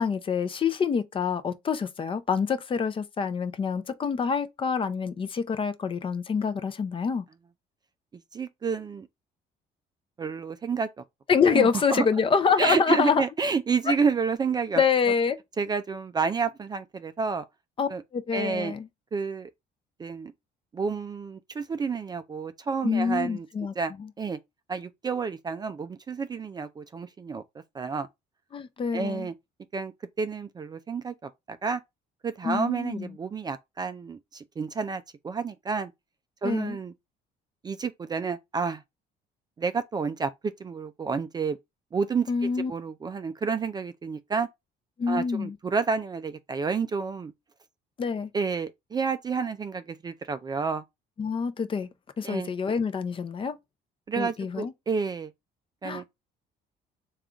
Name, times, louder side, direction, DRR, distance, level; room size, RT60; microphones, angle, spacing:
voice 1, 0.0-7.3 11.3-13.2 13.9-14.0 14.7-15.4 17.8-18.9 22.8-23.7 24.0-24.1 28.5-29.3 32.4-33.1 36.4-36.8 42.3-42.7 45.0-45.6 48.0-48.3 51.2-51.9 52.2-53.6 54.2-54.7 55.8-56.1, left 6 dB, 30° left, 0.5 m, -26 dB
voice 2, 8.3-9.1 10.2-10.9 11.5-12.1 12.6-14.8 15.6-17.4 17.9-18.0 18.3-18.7 19.1-19.5 20.0-20.3 20.7-23.5 23.8-24.4 24.7-27.4 27.7-28.1 28.9-29.3 29.7-31.8 32.2-35.9 36.4-36.9 37.6-38.8 39.6-40.3 40.6-41.6 41.9-42.3 42.7-44.5 45.1-47.3 48.3-50.8 52.2-52.5 54.1-55.3 55.8-56.0, right 5 dB, 25° right, 0.3 m, -30 dB
3.5 x 2.4 x 3.8 m
cardioid pair, 110°, 17 cm